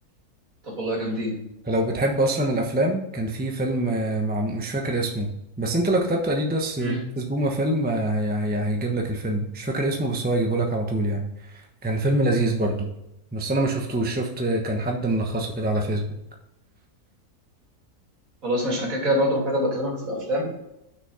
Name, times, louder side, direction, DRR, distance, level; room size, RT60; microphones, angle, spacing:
voice 1, 0.6-1.3 6.8-7.0 18.4-20.5, equal, 60° right, -3 dB, 3.4 m, -25 dB
voice 2, 1.7-5.3 5.6-12.9 13.3-16.1, right 1 dB, 5° right, 2 dB, 0.9 m, -25 dB
6.6 x 6.3 x 5.6 m, 0.84 s
omnidirectional pair, 1.6 m